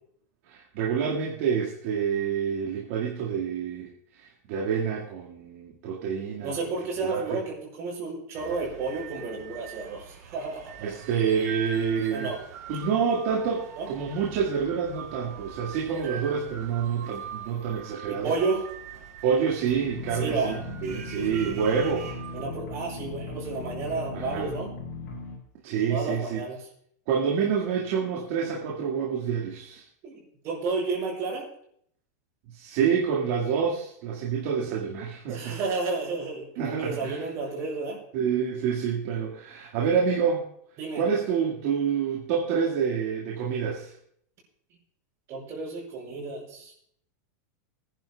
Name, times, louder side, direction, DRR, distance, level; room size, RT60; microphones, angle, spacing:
voice 1, 0.5-3.9 4.2-6.6 7.0-7.4 10.8-12.3 12.7-18.3 19.2-22.1 24.1-24.5 25.6-26.4 27.1-29.8 32.5-35.6 36.6-37.2 38.1-40.4 40.9-43.9, right 6 dB, 50° right, -3 dB, 2.0 m, -27 dB
voice 2, 6.4-10.9 12.1-12.4 13.8-13.9 16.0-16.2 18.1-18.6 20.2-20.5 21.1-21.6 22.3-24.7 25.9-26.6 30.0-30.2 30.4-31.5 34.8-38.0 40.8-41.1 45.3-46.7, right 3 dB, 30° right, -2 dB, 5.9 m, -32 dB
sound 1, 8.3-22.4, right 7 dB, 80° right, 3.3 m, -43 dB
sound 2, 19.7-25.4, left 3 dB, 60° left, 5.9 m, -38 dB
24.5 x 10.5 x 2.4 m, 0.69 s
supercardioid pair, 165°, 9 cm